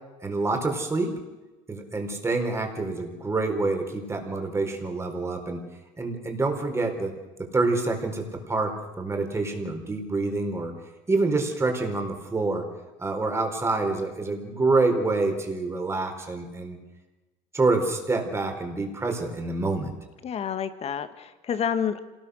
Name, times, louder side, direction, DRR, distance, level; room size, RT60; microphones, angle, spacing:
voice 1, 0.2-1.2 1.7-5.6 6.0-10.7 11.1-12.7 13.0-16.8 17.5-19.9, right 3 dB, 15° right, 4 dB, 4.3 m, -27 dB
voice 2, 20.2-22.1, left 8 dB, 35° left, 11 dB, 1.8 m, -29 dB
26.5 x 19.0 x 6.5 m, 1.2 s
supercardioid pair, 115°, 17 cm